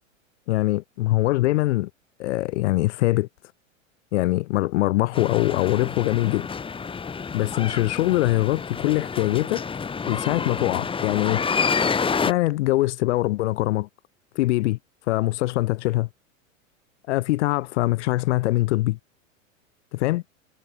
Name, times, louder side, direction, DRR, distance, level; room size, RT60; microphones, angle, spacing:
voice 1, 0.5-1.9 2.2-3.3 4.1-6.5 7.3-9.6 10.1-11.4 12.2-13.9 14.3-14.8 15.1-16.1 17.1-19.0 19.9-20.2, left 18 dB, 60° left, 0.8 m, -23 dB
sound 1, 5.1-12.3, left 5 dB, 15° left, 1.5 m, -28 dB
hypercardioid pair, 105°, 40 cm